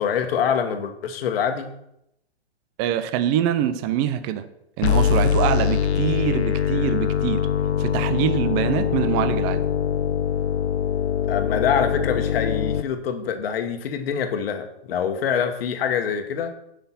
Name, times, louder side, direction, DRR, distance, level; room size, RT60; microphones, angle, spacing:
voice 1, 0.0-1.7 11.3-16.5, left 7 dB, 65° left, 6 dB, 1.4 m, -25 dB
voice 2, 2.8-4.4 4.8-7.5 7.8-9.6, right 10 dB, 20° right, 12 dB, 0.4 m, -24 dB
sound 1, 4.8-12.8, left 8 dB, 80° left, 1.0 m, -23 dB
8.1 x 5.8 x 5.9 m, 0.79 s
hypercardioid pair, 140°, 32 cm